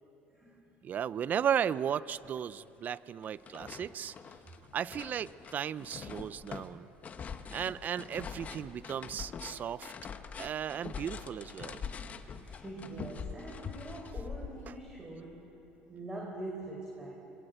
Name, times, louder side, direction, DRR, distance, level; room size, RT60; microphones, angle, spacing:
voice 1, 0.8-4.1 4.7-6.9 7.5-9.9 10.4-11.8 14.7-14.8, right 8 dB, 45° right, 18 dB, 0.6 m, -35 dB
sound 1, 1.8-1.9 2.2-3.0 3.2-14.9, left 6 dB, 35° left, 1.4 m, -44 dB
voice 2, 12.4-15.5 15.9-17.2, right 2 dB, 20° right, -1 dB, 4.7 m, -43 dB
27.0 x 22.0 x 8.0 m, 3.0 s
supercardioid pair, 100°, 4 cm